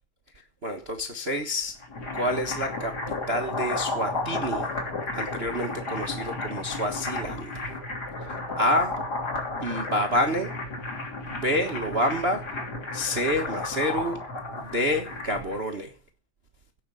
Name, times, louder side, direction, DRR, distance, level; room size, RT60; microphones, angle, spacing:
voice 1, 0.6-1.8 2.1-2.9 3.3-4.7 5.1-7.5 8.2-9.0 9.6-10.5 11.2-12.4 12.9-14.2 14.7-15.9, left 1 dB, 55° right, 4 dB, 0.7 m, -28 dB
sound 1, 1.7-15.6, left 2 dB, 30° left, 3.8 m, -33 dB
17.0 x 6.6 x 8.2 m, 0.39 s
omnidirectional pair, 3.5 m